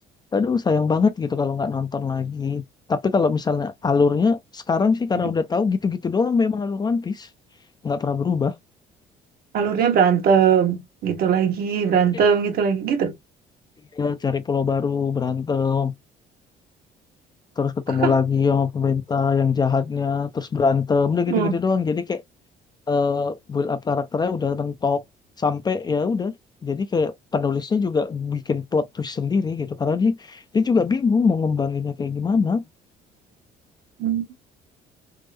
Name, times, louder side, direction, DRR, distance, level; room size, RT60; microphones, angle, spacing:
voice 1, 0.3-2.6 2.9-7.3 7.8-8.6 13.9-15.9 17.6-22.2 22.9-25.0 25.4-26.3 26.6-32.6, left 5 dB, 25° left, 0.4 m, -22 dB
voice 2, 9.5-13.1 17.9-18.2 21.3-21.6 34.0-34.2, right 7 dB, 65° right, 1.1 m, -20 dB
3.5 x 2.0 x 3.2 m
cardioid pair, 110°, 17 cm